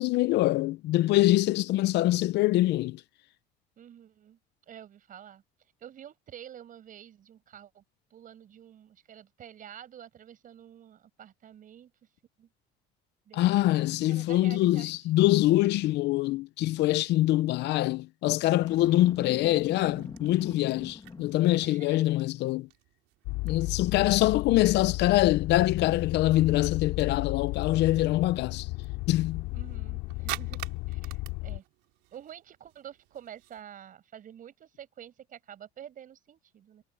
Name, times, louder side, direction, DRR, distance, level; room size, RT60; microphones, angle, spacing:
voice 1, 0.0-3.0 13.3-22.7 23.4-28.7 29.1-29.5, left 16 dB, 65° left, 0.8 m, -24 dB
voice 2, 3.8-4.4 4.7-5.4 5.8-7.8 8.1-12.1 12.4-12.5 13.3-15.0 21.5-22.2 23.6-23.7 29.5-30.6 30.9-31.6 32.1-36.8, right 10 dB, 45° right, 6.3 m, -48 dB
Boom, 18.6-21.8, left 4 dB, 20° left, 2.2 m, -44 dB
sound 1, 19.2-33.6, right 20 dB, 80° right, 4.2 m, -48 dB
sound 2, 23.2-31.6, left 22 dB, 85° left, 3.6 m, -34 dB
cardioid pair, 115°, 19 cm